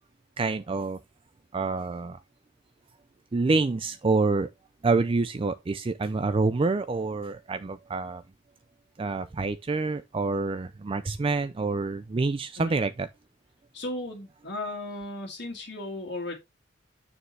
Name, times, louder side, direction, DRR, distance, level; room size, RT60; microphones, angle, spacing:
voice 1, 0.4-1.0 1.5-2.2 3.3-4.5 4.8-8.2 9.0-13.1, right 3 dB, 30° right, 0.4 m, -27 dB
voice 2, 13.7-16.3, left 2 dB, 60° left, 1.9 m, -35 dB
6.8 x 6.7 x 3.2 m
head